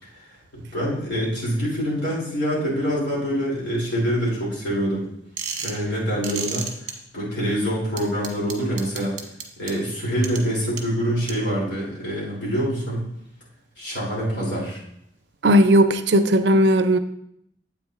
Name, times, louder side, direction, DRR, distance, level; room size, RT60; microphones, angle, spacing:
voice 1, 0.5-5.1 5.6-9.2 9.6-13.0 13.8-14.8, equal, 70° left, -5 dB, 3.3 m, -25 dB
sound 1, 5.4-5.8 6.2-6.9 8.0-9.7 10.2-10.4 10.8-10.9 11.3-11.4, right 6 dB, 40° right, 1.2 m, -30 dB
voice 2, 15.4-17.0, equal, 65° right, 11 dB, 0.5 m, -16 dB
9.3 x 8.0 x 2.5 m, 0.74 s
head